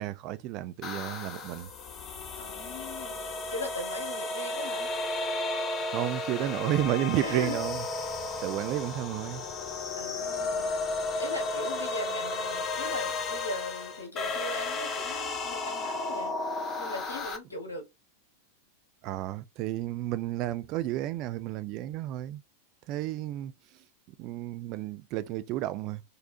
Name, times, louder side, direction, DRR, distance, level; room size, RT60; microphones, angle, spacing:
voice 1, 0.0-1.7 5.9-7.8 8.4-9.4 19.0-22.4 22.9-23.5 24.2-26.0, right 14 dB, 40° right, 0.3 m, -31 dB
sound 1, 0.8-17.4, left 3 dB, 25° left, 0.7 m, -33 dB
voice 2, 2.4-3.2 3.5-4.9 7.2-7.6 9.9-16.3 16.8-17.9, left 1 dB, 80° left, 1.4 m, -39 dB
4.0 x 2.7 x 2.6 m
figure-of-eight pair, 90°, 0 cm